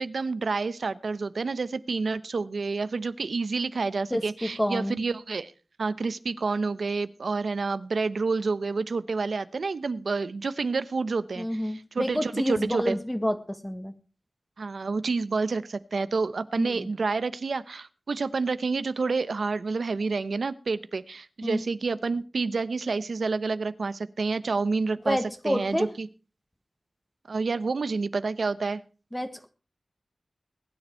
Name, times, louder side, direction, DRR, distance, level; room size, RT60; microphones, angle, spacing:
voice 1, 0.0-5.5 5.8-13.0 14.6-25.2 25.4-26.1 27.3-28.8, right 4 dB, 80° right, 14 dB, 0.9 m, -29 dB
voice 2, 4.1-5.0 11.4-13.9 16.6-16.9 21.4-21.6 25.0-25.9 29.1-29.5, equal, 10° left, 7 dB, 1.4 m, -29 dB
20.5 x 9.8 x 4.5 m, 0.36 s
wide cardioid pair, 75°, 0 cm